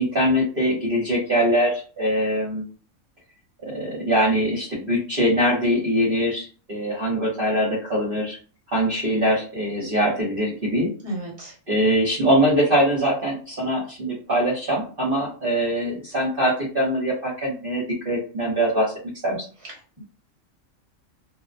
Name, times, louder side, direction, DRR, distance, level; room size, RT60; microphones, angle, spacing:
voice 1, 0.0-2.6 3.6-8.4 8.7-10.9 11.7-18.9 19.2-19.5, equal, 45° right, -6 dB, 0.9 m, -22 dB
voice 2, 11.0-11.5, right 1 dB, 20° right, -3 dB, 1.0 m, -32 dB
2.6 x 2.1 x 2.5 m, 0.38 s
omnidirectional pair, 1.5 m